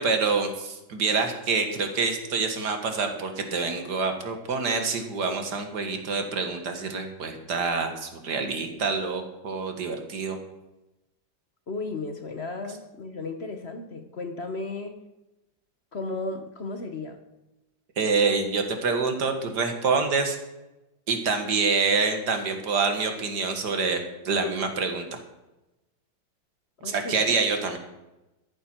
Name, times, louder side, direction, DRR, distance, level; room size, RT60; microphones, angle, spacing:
voice 1, 0.0-10.4 18.0-20.4 21.1-25.2 26.8-27.8, right 4 dB, 60° right, 6 dB, 2.1 m, -26 dB
voice 2, 11.7-15.0 15.9-17.2 26.8-27.3, left 3 dB, 40° left, 7 dB, 1.0 m, -34 dB
14.0 x 11.5 x 4.5 m, 0.99 s
omnidirectional pair, 2.1 m